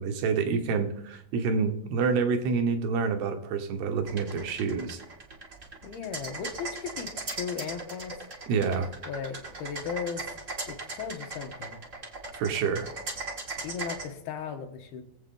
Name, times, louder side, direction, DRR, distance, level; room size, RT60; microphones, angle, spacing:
voice 1, 0.0-5.0 8.5-8.9 12.4-12.9, right 5 dB, 75° right, 7 dB, 3.0 m, -27 dB
sound 1, 4.1-14.0, right 3 dB, 50° right, 0.9 m, -38 dB
voice 2, 5.8-8.2 9.1-10.3 10.7-11.8 13.6-15.0, left 7 dB, 75° left, 5 dB, 2.9 m, -36 dB
22.0 x 7.9 x 3.8 m, 0.77 s
omnidirectional pair, 4.8 m